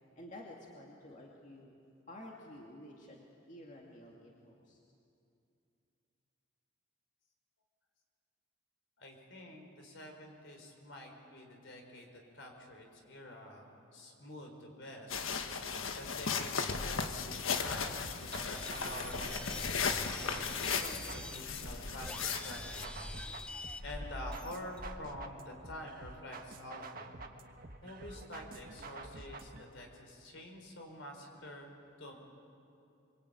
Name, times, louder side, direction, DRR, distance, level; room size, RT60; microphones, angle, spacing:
voice 1, 0.2-1.8 2.1-4.8, left 1 dB, 40° left, -2 dB, 2.4 m, -51 dB
voice 2, 9.0-15.2 15.9-23.5 23.8-27.1 27.8-31.7 32.0-32.1, left 1 dB, 65° left, 3 dB, 4.8 m, -48 dB
sound 1, 15.1-22.9, left 5 dB, 80° left, 1.4 m, -36 dB
sound 2, 17.6-29.6, right 3 dB, 45° right, 1.4 m, -50 dB
sound 3, 18.3-25.1, left 1 dB, 5° left, 0.7 m, -45 dB
25.0 x 25.0 x 9.3 m, 2.7 s
head